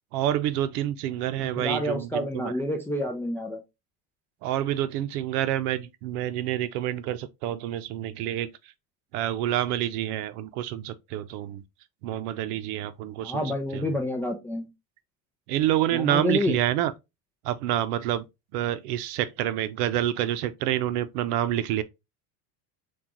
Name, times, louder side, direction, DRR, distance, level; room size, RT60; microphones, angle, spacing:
voice 1, 0.1-2.5 4.4-8.5 9.1-11.6 12.0-13.9 15.5-16.9 17.4-18.3 18.5-21.8, right 12 dB, 85° right, 0.7 m, -28 dB
voice 2, 1.4-3.6 13.2-14.7 15.9-16.6, left 1 dB, 5° left, 0.3 m, -29 dB
6.0 x 2.4 x 2.9 m
supercardioid pair, 140°, 45 cm